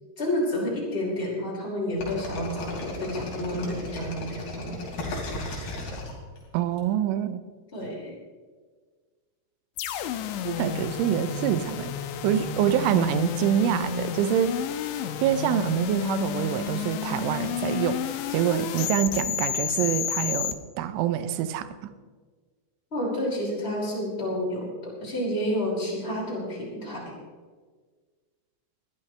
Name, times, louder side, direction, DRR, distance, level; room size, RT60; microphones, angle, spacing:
voice 1, 0.2-4.8 7.7-8.1 22.9-27.2, left 1 dB, 10° left, -5 dB, 5.5 m, -30 dB
sound 1, 2.0-6.8, left 2 dB, 60° left, 4.9 m, -35 dB
voice 2, 6.5-7.4 10.4-11.9 12.2-14.6 15.2-18.0 18.3-21.9, right 10 dB, 90° right, 12 dB, 3.3 m, -26 dB
sound 2, 9.8-20.5, left 10 dB, 80° left, 2.9 m, -31 dB
20.5 x 14.5 x 3.4 m, 1.5 s
omnidirectional pair, 5.4 m